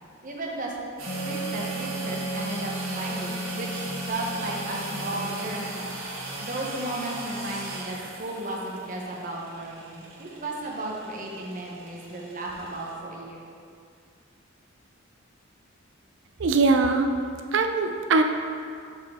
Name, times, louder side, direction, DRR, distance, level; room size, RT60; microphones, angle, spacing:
voice 1, 0.2-0.7 1.2-5.9 6.4-13.5, right 1 dB, 40° right, -1 dB, 0.9 m, -34 dB
sound 1, 1.0-12.9, right 2 dB, 90° right, 1.1 m, -38 dB
Wind instrument woodwind instrument, 1.1-6.5, right 1 dB, 30° left, 0.3 m, -35 dB
voice 2, 16.4-17.1 17.5-18.2, right 3 dB, 60° right, 6 dB, 0.5 m, -21 dB
6.1 x 5.5 x 3.5 m, 2.3 s
head